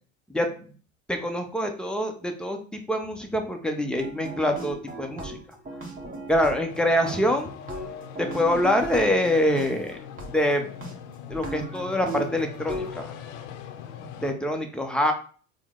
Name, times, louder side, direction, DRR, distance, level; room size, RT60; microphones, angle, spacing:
voice 1, 1.1-5.4 6.3-7.6 8.2-10.0 10.3-10.7 11.3-13.1 14.2-15.1, left 1 dB, ahead, 4 dB, 0.5 m, -25 dB
sound 1, 4.0-6.8 7.1-9.7 10.2-10.3 10.8-10.9 11.3-12.9, right 2 dB, 20° right, 1.1 m, -37 dB
sound 2, 6.7-14.3, left 8 dB, 55° left, 0.6 m, -41 dB
4.4 x 2.1 x 3.6 m, 0.40 s
hypercardioid pair, 75°, 40 cm